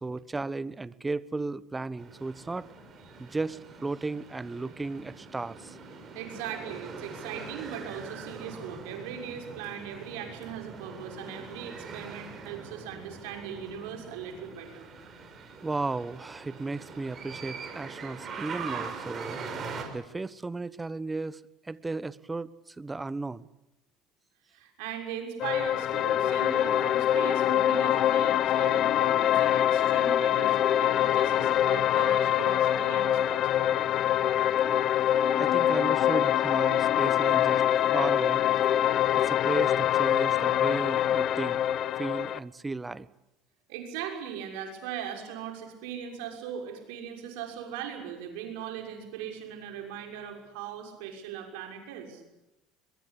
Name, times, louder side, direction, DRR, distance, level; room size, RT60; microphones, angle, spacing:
voice 1, 0.0-2.7 3.2-5.8 15.6-19.6 19.9-23.5 35.4-37.6 37.9-38.4 38.7-38.8 39.1-41.6 42.0-43.1, right 3 dB, 15° right, 18 dB, 1.1 m, -35 dB
sound 1, 2.0-19.8, right 4 dB, 35° right, 6.6 m, -42 dB
voice 2, 6.1-14.9 24.5-33.9 43.7-52.2, right 8 dB, 75° right, 4 dB, 6.4 m, -39 dB
sound 2, 25.4-42.4, left 11 dB, 50° left, 0.9 m, -24 dB
22.5 x 22.0 x 8.6 m, 0.94 s
hypercardioid pair, 85°, 0 cm